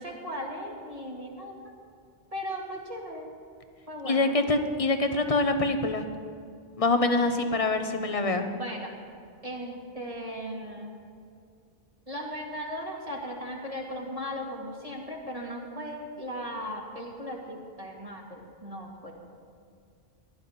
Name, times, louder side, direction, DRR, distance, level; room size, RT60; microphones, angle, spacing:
voice 1, 0.0-1.7 2.3-3.3 3.9-4.4 8.5-8.9 9.4-10.9 12.1-19.1, equal, 35° right, -2 dB, 2.3 m, -37 dB
voice 2, 4.0-6.1 6.8-8.5, left 2 dB, 35° left, 7 dB, 0.9 m, -25 dB
16.5 x 11.5 x 4.4 m, 2.3 s
omnidirectional pair, 1.1 m